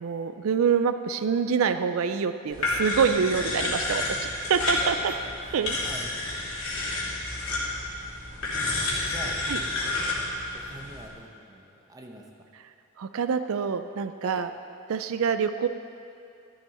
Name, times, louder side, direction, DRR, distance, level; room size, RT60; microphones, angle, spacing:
voice 1, 0.0-4.0 4.5-4.9 5.5-5.8 9.5-9.6 13.0-14.5 14.9-15.7, right 6 dB, 85° right, 10 dB, 0.4 m, -25 dB
sound 1, 2.5-11.1, left 2 dB, 80° left, 2.8 m, -30 dB
voice 2, 3.6-3.9 4.8-4.9 5.4-6.6 7.0-7.9 8.9-9.4 10.5-12.2 14.2-14.4, right 1 dB, 15° right, 1 dB, 0.9 m, -45 dB
13.0 x 11.0 x 4.2 m, 2.6 s
head